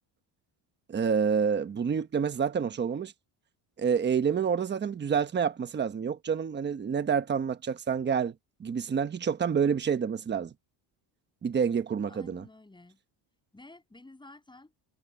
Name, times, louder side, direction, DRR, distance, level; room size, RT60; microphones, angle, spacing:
voice 1, 0.9-3.1 3.8-8.3 8.6-10.5 11.4-12.4, right 7 dB, 25° right, 1.1 m, -28 dB
voice 2, 12.1-13.0 13.5-14.7, left 2 dB, 10° left, 6.7 m, -51 dB
cardioid pair, 150°, 45 cm